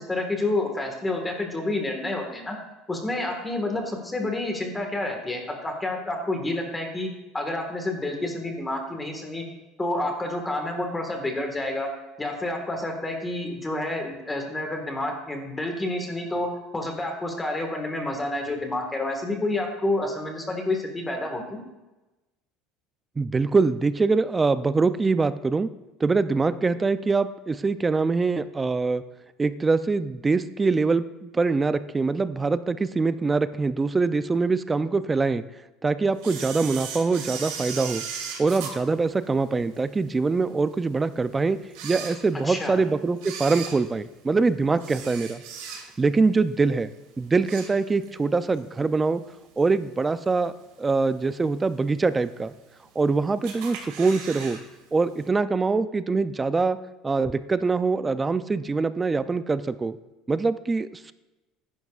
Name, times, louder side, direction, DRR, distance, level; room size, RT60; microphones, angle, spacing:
voice 1, 0.0-2.6 2.9-7.1 7.3-9.4 9.8-11.9 12.2-16.5 16.7-21.6 42.4-42.8, left 2 dB, 10° left, 3 dB, 1.5 m, -29 dB
voice 2, 23.2-25.7 26.0-29.0 29.4-35.4 35.8-38.0 38.4-41.6 41.8-45.4 46.0-46.9 47.2-49.2 49.6-50.5 50.8-52.5 53.0-54.6 54.9-56.8 57.0-60.0 60.3-61.1, right 4 dB, 15° right, 13 dB, 0.3 m, -24 dB
Camera, 36.2-39.8 40.3-40.4 41.1-41.2 41.6-42.7 43.1-46.1 46.5-46.8 47.1-48.2 48.5-48.6 49.6-49.7 50.3-50.7 51.1-51.2 51.4-51.5 51.6-51.7 52.5-53.0 53.4-54.6 54.8-54.9 55.2-55.3, right 7 dB, 80° right, 2.5 m, -37 dB
14.5 x 11.0 x 2.4 m, 1.1 s
cardioid pair, 165°, 0 cm